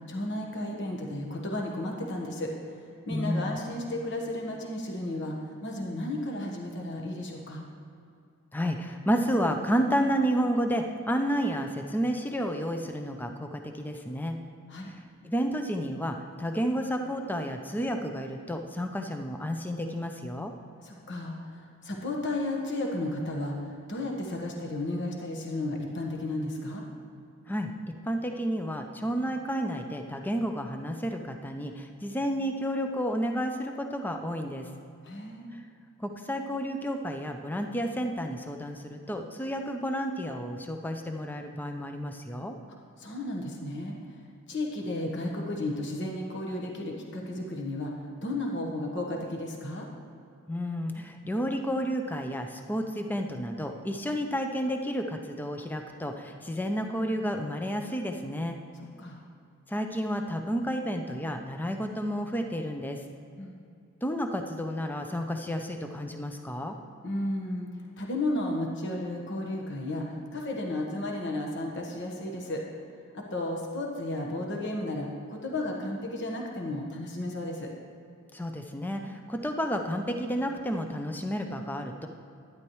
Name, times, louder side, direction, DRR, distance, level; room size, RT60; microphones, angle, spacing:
voice 1, 0.1-2.5 2.8-5.3 5.6-7.6 14.7-14.9 20.8-26.9 35.0-35.5 43.0-44.0 44.5-47.9 48.2-49.9 59.0-59.2 63.4-63.6 67.0-67.7 68.0-72.6 73.1-77.7, left 1 dB, 55° left, 0 dB, 1.3 m, -33 dB
voice 2, 3.1-3.6 8.5-14.4 15.2-20.5 27.5-27.7 28.1-34.7 35.5-35.6 36.0-42.6 50.5-58.6 59.7-63.0 64.0-66.8 78.3-82.1, equal, 10° left, 4 dB, 0.5 m, -31 dB
12.0 x 10.5 x 3.1 m, 2.5 s
head